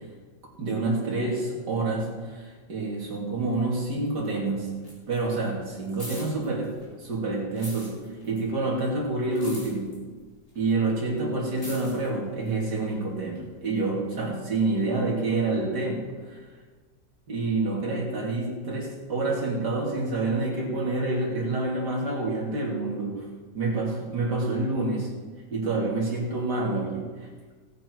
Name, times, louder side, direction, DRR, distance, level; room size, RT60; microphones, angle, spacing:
voice 1, 0.6-4.7 5.1-6.7 7.0-8.0 8.2-9.9 10.6-16.4 17.3-23.3 23.5-25.1 25.5-27.1, right 2 dB, 75° right, -3 dB, 3.4 m, -28 dB
sound 1, 3.4-4.4 4.6-7.1 7.4-13.4 14.1-14.2, left 1 dB, 20° left, 3.2 m, -45 dB
17.0 x 8.7 x 4.7 m, 1.4 s
omnidirectional pair, 1.8 m